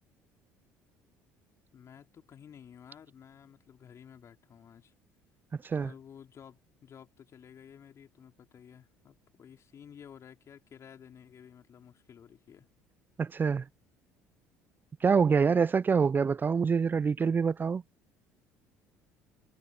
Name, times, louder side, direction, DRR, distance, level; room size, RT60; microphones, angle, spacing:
voice 1, 1.7-4.9 5.7-12.7, left 8 dB, 45° left, 4.2 m, -53 dB
voice 2, 13.2-13.7 15.0-17.8, right 5 dB, 30° right, 0.5 m, -26 dB
hypercardioid pair, 60°, 7 cm